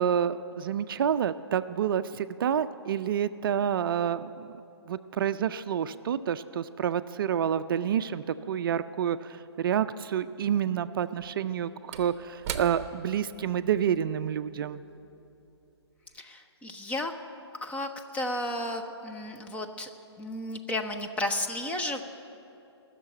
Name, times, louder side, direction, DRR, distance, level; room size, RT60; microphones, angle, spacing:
voice 1, 0.0-4.5 4.9-14.8, right 9 dB, 55° right, 12 dB, 0.4 m, -28 dB
Slam / Wood, 9.5-9.6 11.0-15.7 16.1-16.2, right 8 dB, 35° right, 0.9 m, -43 dB
voice 2, 16.1-17.1 17.6-19.9 20.2-22.0, left 1 dB, 10° left, 4 dB, 0.7 m, -33 dB
18.5 x 6.7 x 8.9 m, 2.9 s
figure-of-eight pair, 130°, 14 cm